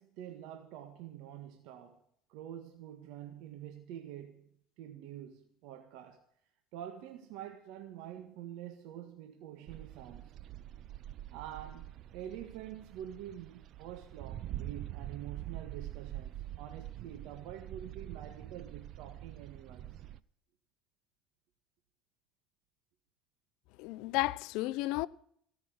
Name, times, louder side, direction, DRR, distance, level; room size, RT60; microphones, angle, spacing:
voice 1, 0.0-2.0 2.3-6.2 6.7-10.3 11.3-20.0, right 10 dB, 70° right, 1.7 m, -47 dB
sound 1, 9.7-20.2, right 13 dB, 55° right, 0.6 m, -45 dB
voice 2, 23.8-25.1, left 18 dB, 70° left, 0.6 m, -32 dB
17.5 x 6.0 x 9.5 m
supercardioid pair, 105°, 0 cm